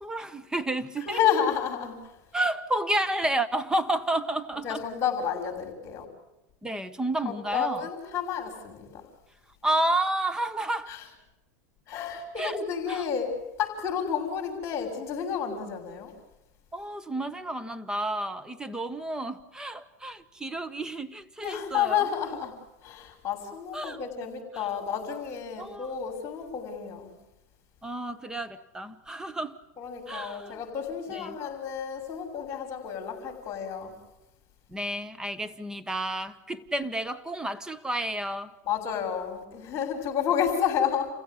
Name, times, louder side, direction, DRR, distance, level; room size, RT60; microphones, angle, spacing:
voice 1, 0.0-1.2 2.3-4.8 6.6-7.9 9.6-11.0 12.4-12.6 12.9-13.0 16.7-22.0 23.7-24.0 24.5-24.7 25.6-25.9 27.8-29.6 30.1-30.6 31.1-31.3 34.7-38.5, right 1 dB, 10° right, 1.3 m, -31 dB
voice 2, 1.0-2.2 4.6-6.1 7.3-9.0 10.9-11.1 11.9-16.1 21.4-27.1 29.8-34.0 38.7-41.1, left 8 dB, 30° left, 6.9 m, -30 dB
29.0 x 16.0 x 9.7 m
hypercardioid pair, 115°, 9 cm